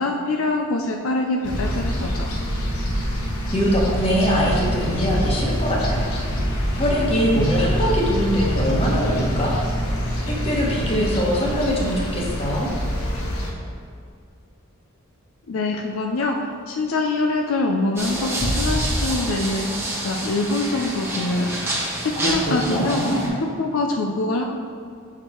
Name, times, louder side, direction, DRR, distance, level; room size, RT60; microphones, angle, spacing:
voice 1, 0.0-2.3 15.5-21.7 22.0-23.0 23.6-24.4, left 2 dB, 70° left, 2 dB, 0.5 m, -24 dB
sound 1, 1.4-13.5, equal, 90° left, 1.3 m, -25 dB
voice 2, 3.5-6.1 6.4-9.5 10.3-12.7 22.1-23.3, equal, 25° left, -4 dB, 1.3 m, -23 dB
sound 2, 18.0-23.3, right 1 dB, 10° right, 1.0 m, -27 dB
6.3 x 4.9 x 4.4 m, 2.4 s
head